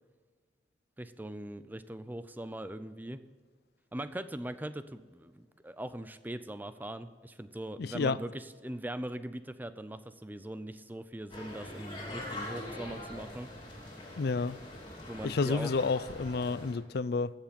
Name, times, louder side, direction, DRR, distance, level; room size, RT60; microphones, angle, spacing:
voice 1, 1.0-3.2 3.9-13.5 15.1-15.7, right 1 dB, 10° right, 0.5 m, -41 dB
voice 2, 7.8-8.2 14.2-14.6 15.2-17.3, left 4 dB, 60° left, 0.4 m, -30 dB
sound 1, 11.3-16.7, left 1 dB, 30° left, 2.9 m, -43 dB
14.5 x 7.2 x 5.3 m
head